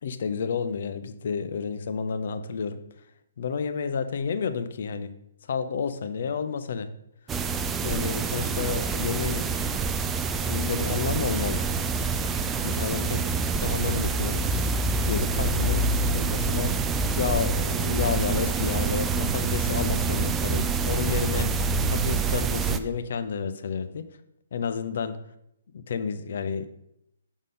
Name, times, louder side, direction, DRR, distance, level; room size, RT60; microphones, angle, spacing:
voice 1, 0.0-2.8 3.4-5.1 5.5-6.9 7.8-9.6 10.5-11.6 12.6-16.8 17.2-24.1 24.5-25.2 25.7-26.7, left 6 dB, 50° left, 10 dB, 0.5 m, -31 dB
sound 1, 7.3-22.8, right 4 dB, 15° right, 0.3 m, -26 dB
6.6 x 3.6 x 5.1 m, 0.80 s
figure-of-eight pair, 130°, 0 cm